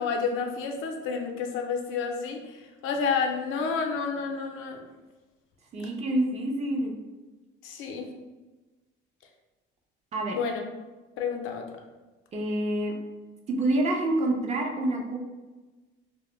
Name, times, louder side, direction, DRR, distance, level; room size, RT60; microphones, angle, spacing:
voice 1, 0.0-4.8 7.6-8.1 10.3-10.6 11.2-11.7, left 5 dB, 70° left, 3 dB, 0.5 m, -30 dB
voice 2, 5.7-6.9 10.1-10.4 12.3-12.9 13.5-15.2, right 1 dB, 30° right, 1 dB, 0.4 m, -27 dB
2.5 x 2.0 x 3.0 m, 1.2 s
cardioid pair, 135°, 21 cm